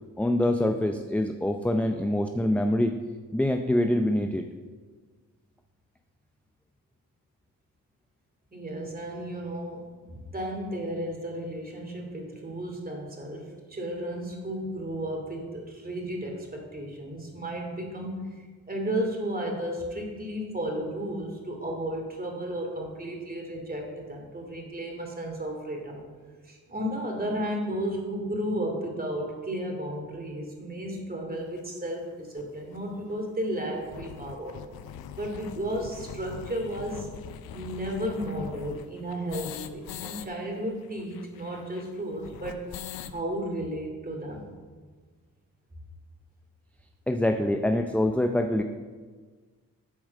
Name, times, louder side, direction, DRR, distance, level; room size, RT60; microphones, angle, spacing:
voice 1, 0.2-3.0 3.3-4.5 47.1-48.6, left 1 dB, 5° left, 6 dB, 0.5 m, -25 dB
voice 2, 8.5-26.0 26.4-34.6 35.1-37.1 37.5-42.7 43.1-44.5, right 1 dB, 25° right, 2 dB, 2.6 m, -33 dB
sound 1, 31.6-31.7 32.4-32.5 32.7-32.8 33.1-33.2 33.6-40.3 40.5-40.6 40.8-43.2, left 9 dB, 75° left, 0.6 m, -42 dB
8.7 x 4.7 x 6.4 m, 1.5 s
supercardioid pair, 50°, 37 cm